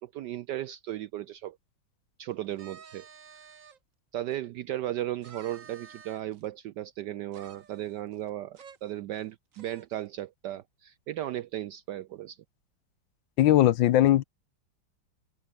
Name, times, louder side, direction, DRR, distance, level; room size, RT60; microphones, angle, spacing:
voice 1, 0.0-1.6 2.2-3.4 4.1-12.4, right 13 dB, 75° right, 1.0 m, -36 dB
sound 1, 2.5-3.8 4.3-4.4 5.2-6.5 7.3-8.3 8.6-8.8 9.1-9.2 9.5-10.0, right 6 dB, 40° right, 1.7 m, -51 dB
voice 2, 13.4-14.2, left 13 dB, 70° left, 1.4 m, -20 dB
open air
omnidirectional pair, 2.3 m